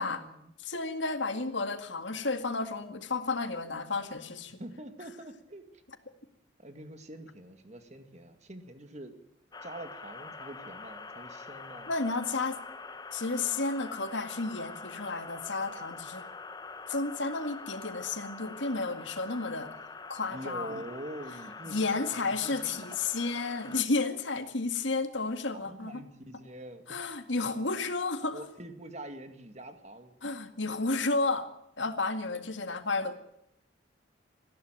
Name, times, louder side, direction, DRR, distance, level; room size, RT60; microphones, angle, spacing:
voice 1, 0.0-0.5 4.6-5.8 6.6-9.1 9.6-11.9 20.3-22.7 23.0-23.1 25.5-27.0 28.3-30.2 32.3-32.4, right 1 dB, 35° right, 8 dB, 2.0 m, -45 dB
voice 2, 0.6-4.6 11.9-12.6 13.1-16.3 16.9-20.8 21.7-26.0 26.9-28.4 30.2-31.5 31.8-33.2, left 3 dB, 70° left, 8 dB, 2.0 m, -32 dB
sound 1, 9.5-23.8, left 4 dB, 20° left, 0.9 m, -45 dB
19.5 x 15.0 x 9.0 m, 0.79 s
head